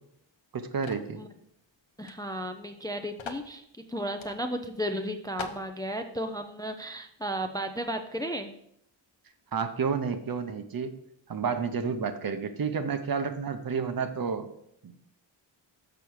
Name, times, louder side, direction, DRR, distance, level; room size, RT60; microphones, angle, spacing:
voice 1, 0.5-1.2 9.5-10.9 11.3-14.5 14.8-15.0, right 5 dB, 50° right, 9 dB, 0.8 m, -30 dB
sound 1, 0.8-1.1 2.0-2.2 2.4-2.5 3.2-3.5 4.2-4.4 4.9-5.0 5.4-5.7, left 5 dB, 80° left, 0.9 m, -40 dB
voice 2, 2.0-8.5, equal, 10° left, 6 dB, 0.4 m, -34 dB
7.0 x 6.1 x 4.6 m, 0.72 s
wide cardioid pair, 165°, 46 cm